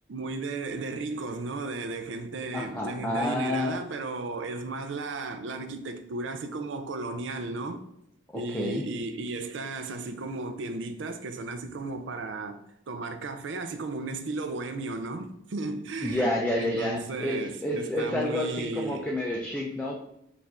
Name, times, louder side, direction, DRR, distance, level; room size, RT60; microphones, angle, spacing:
voice 1, 0.1-7.8 8.3-12.6 12.9-19.1, right 3 dB, 80° right, 0.5 m, -34 dB
voice 2, 2.5-3.8 8.3-8.9 16.0-20.0, left 1 dB, 10° left, 0.4 m, -29 dB
5.1 x 2.5 x 3.4 m
head